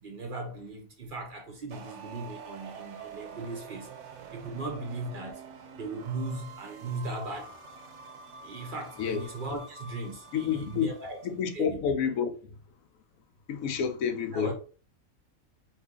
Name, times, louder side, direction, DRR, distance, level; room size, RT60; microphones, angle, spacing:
voice 1, 0.0-3.9 4.3-5.4 5.8-7.6 8.4-11.3 11.5-11.8 14.3-14.5, right 2 dB, 50° right, 0.7 m, -37 dB
sound 1, 1.7-11.3, right 5 dB, 80° right, 1.0 m, -47 dB
voice 2, 10.3-10.9 11.2-12.3 13.5-14.5, left 7 dB, 80° left, 1.0 m, -29 dB
3.0 x 2.5 x 3.5 m
omnidirectional pair, 1.4 m